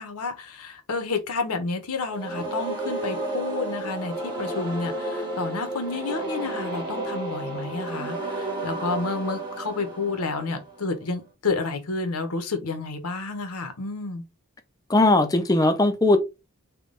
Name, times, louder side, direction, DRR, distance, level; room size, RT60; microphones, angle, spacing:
voice 1, 0.0-14.2, left 3 dB, 90° left, 0.8 m, -30 dB
sound 1, 2.1-11.0, right 2 dB, 20° right, 1.0 m, -32 dB
voice 2, 14.9-16.2, left 2 dB, 15° left, 0.4 m, -19 dB
3.6 x 2.2 x 3.7 m
head